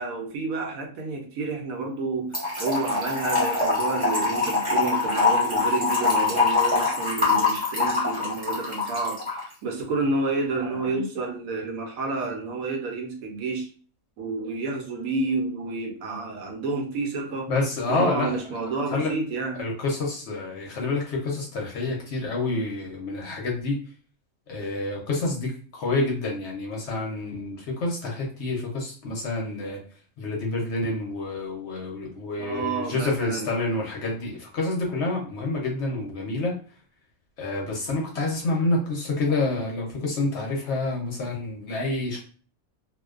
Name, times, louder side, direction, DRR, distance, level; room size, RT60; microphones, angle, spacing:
voice 1, 0.0-13.7 14.2-17.5 17.9-19.6 32.4-33.5, right 3 dB, 80° right, 3 dB, 1.0 m, -30 dB
Trickle dribble / Fill (with liquid), 2.3-9.4, left 3 dB, 10° left, 0.8 m, -24 dB
voice 2, 17.5-18.3 18.9-19.1 19.5-23.8 24.5-29.8 30.2-36.6 37.4-42.2, left 2 dB, 65° left, -1 dB, 0.8 m, -28 dB
2.4 x 2.2 x 2.3 m, 0.42 s
omnidirectional pair, 1.5 m